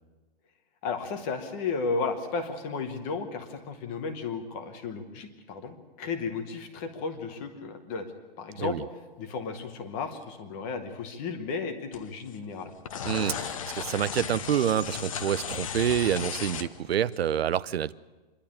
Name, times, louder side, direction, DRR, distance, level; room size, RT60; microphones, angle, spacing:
voice 1, 0.8-8.1 8.4-8.8 9.2-12.7, left 4 dB, 15° left, 0.9 m, -34 dB
sound 1, 11.9-12.3 12.6-17.1, left 8 dB, 35° left, 0.9 m, -36 dB
voice 2, 13.0-17.9, right 9 dB, 85° right, 0.7 m, -27 dB
26.5 x 11.5 x 8.7 m
hypercardioid pair, 175°, 30 cm